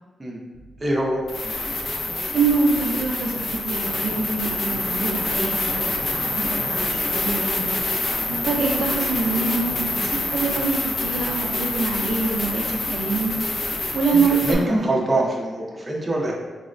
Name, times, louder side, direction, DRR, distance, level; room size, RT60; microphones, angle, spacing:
sound 1, 0.6-0.7 1.3-14.5, left 2 dB, 50° left, 0.4 m, -26 dB
voice 1, 0.8-1.2 14.1-16.3, right 1 dB, 20° right, -3 dB, 0.5 m, -24 dB
voice 2, 2.3-7.7 8.3-13.3 13.9-14.9, right 4 dB, 75° right, -1 dB, 0.4 m, -25 dB
3.9 x 2.0 x 2.5 m, 1.2 s
cardioid pair, 120°, 0 cm